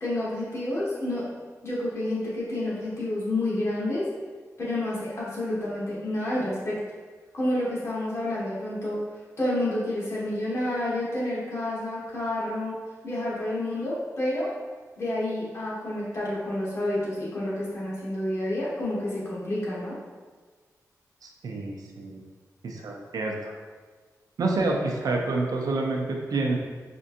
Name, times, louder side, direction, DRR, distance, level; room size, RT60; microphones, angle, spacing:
voice 1, 0.0-1.3 1.6-4.1 4.6-6.8 7.3-9.0 9.4-12.7 13.0-14.5 15.0-19.9, left 1 dB, 45° left, -8 dB, 1.4 m, -29 dB
voice 2, 21.2-22.2 22.6-23.5 24.4-26.6, right 3 dB, 80° right, 1 dB, 0.5 m, -28 dB
4.3 x 2.6 x 2.6 m, 1.4 s
wide cardioid pair, 100°, 6 cm